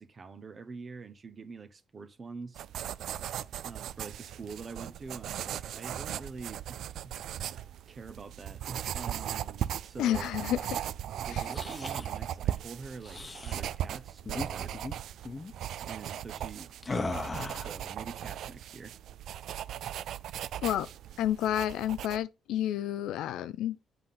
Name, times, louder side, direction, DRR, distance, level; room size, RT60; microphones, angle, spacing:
voice 1, 0.0-2.6 3.6-7.1 7.5-10.3 11.2-14.7 15.8-19.0, right 4 dB, 40° right, 1.0 m, -45 dB
sound 1, 2.5-22.2, right 11 dB, 75° right, 0.4 m, -38 dB
voice 2, 10.0-10.8 11.3-11.4 20.6-20.9 21.2-23.8, left 11 dB, 85° left, 0.5 m, -30 dB
sound 2, 11.2-12.1 13.0-13.6 14.2-14.5 14.7-14.9 15.2-15.5 16.8-17.8, left 3 dB, 30° left, 1.0 m, -37 dB
8.0 x 3.8 x 5.7 m
cardioid pair, 80°, 0 cm